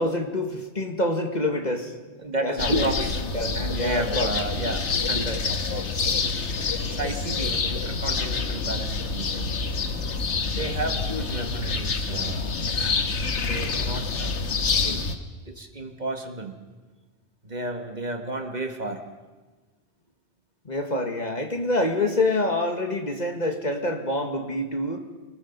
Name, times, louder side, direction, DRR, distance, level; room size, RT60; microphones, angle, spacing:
voice 1, 0.0-1.9 2.4-2.9 3.3-4.3 10.5-10.6 20.7-25.1, left 1 dB, 40° left, 4 dB, 1.7 m, -26 dB
voice 2, 2.2-3.2 3.5-6.1 6.9-9.5 10.5-12.7 13.4-14.3 14.8-15.1 15.4-16.5 17.4-19.0, right 1 dB, 40° right, 5 dB, 1.7 m, -32 dB
sound 1, 2.6-15.1, left 4 dB, 80° left, 1.6 m, -27 dB
25.0 x 20.0 x 5.4 m, 1.3 s
omnidirectional pair, 1.2 m